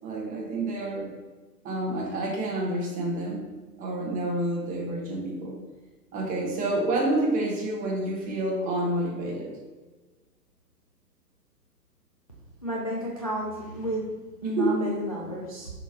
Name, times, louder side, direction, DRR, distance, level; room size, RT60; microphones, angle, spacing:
voice 1, 0.0-1.1 1.6-3.5 3.8-5.6 6.1-9.5 14.4-14.9, right 1 dB, 15° right, -2 dB, 1.1 m, -28 dB
voice 2, 12.6-15.7, right 1 dB, 25° left, -4 dB, 0.3 m, -31 dB
6.2 x 5.3 x 3.0 m, 1.3 s
hypercardioid pair, 130°, 50 cm